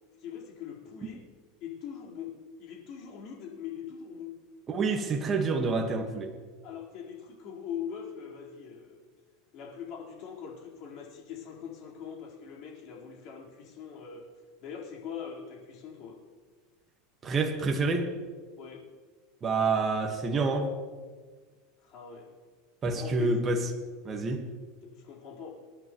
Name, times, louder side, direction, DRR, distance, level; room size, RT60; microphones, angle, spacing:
voice 1, 0.2-1.2 1.6-4.4 6.6-9.0 9.5-14.3 14.6-16.2 18.6-18.9 21.8-22.3 22.9-23.4 24.8-25.5, left 8 dB, 45° left, -2 dB, 4.2 m, -42 dB
voice 2, 4.7-6.3 17.2-18.1 19.4-20.7 22.8-23.6 24.0-24.5, right 3 dB, 20° right, 3 dB, 1.5 m, -28 dB
27.5 x 11.0 x 3.1 m, 1.5 s
supercardioid pair, 155°, 0 cm